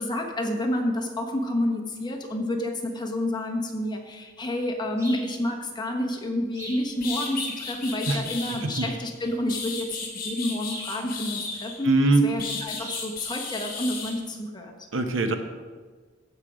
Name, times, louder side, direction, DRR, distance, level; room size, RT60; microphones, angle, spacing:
voice 1, 0.0-11.9 12.2-14.7, left 1 dB, 20° left, 2 dB, 1.2 m, -29 dB
sound 1, 5.0-5.3 6.5-6.9 8.7-9.0 10.6-11.0 12.8-13.1, equal, 15° right, 2.5 m, -39 dB
sound 2, 6.6-6.7 7.0-8.6 9.2-11.9 12.4-14.1, left 4 dB, 45° left, 2.0 m, -34 dB
voice 2, 8.5-8.9 11.8-12.2 14.9-15.3, right 2 dB, 80° right, 7 dB, 0.9 m, -22 dB
15.0 x 5.2 x 5.0 m, 1.5 s
head